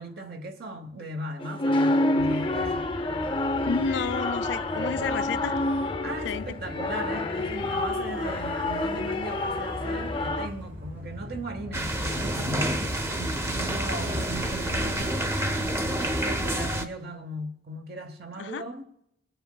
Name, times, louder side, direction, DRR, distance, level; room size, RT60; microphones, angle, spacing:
voice 1, 0.0-2.9 6.0-15.2 15.8-18.9, right 1 dB, 60° right, 1.0 m, -38 dB
sound 1, 1.4-10.5, left 2 dB, 30° left, 0.5 m, -28 dB
Motor vehicle (road), 2.2-16.2, left 1 dB, 80° right, 3.0 m, -39 dB
voice 2, 3.6-5.6 6.2-6.6 15.0-15.1 18.4-18.7, left 6 dB, 85° left, 0.4 m, -31 dB
sound 2, 11.7-16.8, right 1 dB, 15° right, 0.6 m, -28 dB
23.0 x 7.8 x 2.2 m
head